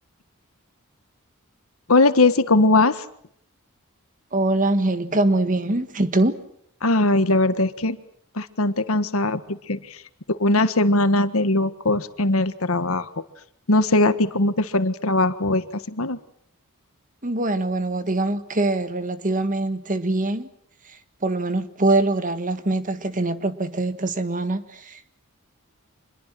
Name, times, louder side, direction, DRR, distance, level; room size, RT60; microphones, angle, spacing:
voice 1, 1.9-3.0 6.8-8.0 8.3-10.0 10.3-13.1 13.7-16.2, left 2 dB, 70° left, 11 dB, 1.5 m, -20 dB
voice 2, 4.3-6.4 17.2-20.5 21.2-25.1, right 2 dB, 35° right, 10 dB, 1.6 m, -23 dB
26.5 x 21.5 x 7.6 m, 0.69 s
head